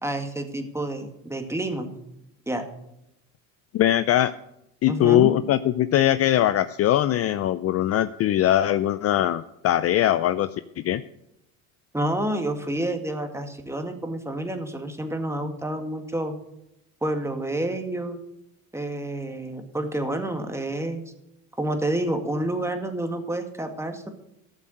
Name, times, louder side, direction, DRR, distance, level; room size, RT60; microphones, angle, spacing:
voice 1, 0.0-1.9 2.5-2.7 4.9-5.3 11.9-16.4 17.0-18.2 18.7-21.0 21.6-24.1, right 1 dB, 5° right, 6 dB, 2.0 m, -29 dB
voice 2, 3.7-4.3 4.8-10.5 10.8-11.0, left 12 dB, 40° left, 13 dB, 0.5 m, -21 dB
14.0 x 7.3 x 6.6 m, 0.83 s
supercardioid pair, 95°, 39 cm